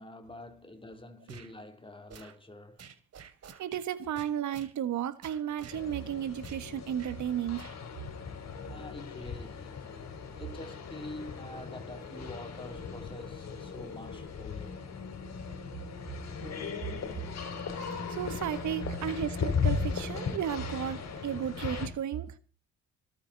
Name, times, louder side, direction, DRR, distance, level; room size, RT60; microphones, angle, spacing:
voice 1, 0.0-2.8 8.7-9.9 10.4-14.8, left 1 dB, 15° left, 3.0 m, -46 dB
sound 1, 1.3-1.5 2.1-2.4 2.8-3.9 4.2-4.7 5.2-5.8 6.4-6.6 7.0-7.2 7.6-7.8, right 7 dB, 55° right, 2.8 m, -49 dB
voice 2, 3.6-7.7 17.7-22.4, right 10 dB, 70° right, 1.5 m, -34 dB
sound 2, 5.7-21.9, left 6 dB, 60° left, 4.1 m, -37 dB
26.5 x 9.0 x 4.0 m
cardioid pair, 90°, 30 cm